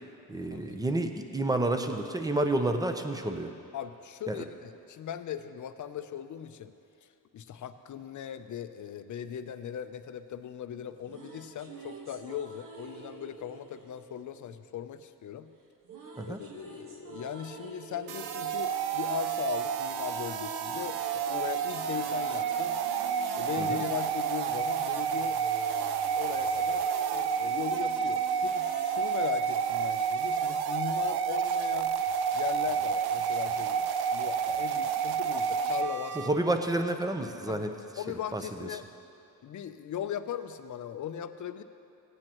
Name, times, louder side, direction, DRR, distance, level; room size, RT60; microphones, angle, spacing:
voice 1, 0.3-3.5 4.3-4.5 16.2-16.4 23.6-23.8 36.1-37.7 38.1-38.7, right 2 dB, 10° right, 6 dB, 0.7 m, -30 dB
voice 2, 3.7-6.7 7.3-15.5 16.3-22.8 23.3-25.4 26.2-32.0 32.3-36.2 37.5-37.6 38.0-38.8 39.4-41.6, left 9 dB, 50° left, 10 dB, 0.6 m, -38 dB
sound 1, 10.8-15.0 15.8-20.1 20.4-28.9, right 5 dB, 55° right, 1.4 m, -49 dB
sound 2, 18.1-36.3, right 7 dB, 70° right, 0.7 m, -30 dB
16.5 x 9.6 x 3.0 m, 2.8 s
cardioid pair, 85°, 39 cm